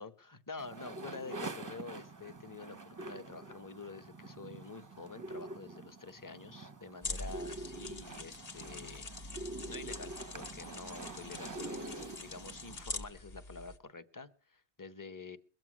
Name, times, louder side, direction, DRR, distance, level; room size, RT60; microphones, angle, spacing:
voice 1, 0.0-15.4, left 4 dB, 20° left, 0.7 m, -48 dB
sound 1, 0.6-12.8, right 2 dB, 20° right, 0.6 m, -46 dB
sound 2, 7.0-13.8, left 3 dB, 40° left, 1.1 m, -44 dB
22.0 x 7.8 x 6.1 m
omnidirectional pair, 1.1 m